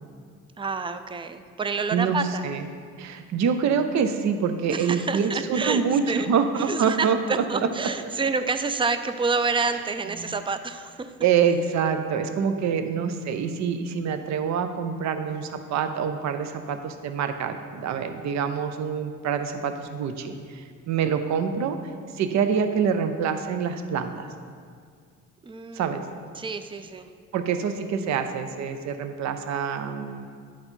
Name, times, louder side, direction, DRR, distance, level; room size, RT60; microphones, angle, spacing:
voice 1, 0.6-2.4 4.7-6.3 6.7-11.1 25.4-27.1, right 4 dB, 15° right, 10 dB, 0.4 m, -28 dB
voice 2, 3.0-7.4 9.6-9.7 10.2-10.3 11.2-21.8 22.2-24.3 25.7-26.0 27.3-30.3, right 6 dB, 65° right, 8 dB, 0.6 m, -26 dB
11.0 x 4.2 x 4.4 m, 2.1 s
cardioid pair, 90°, 30 cm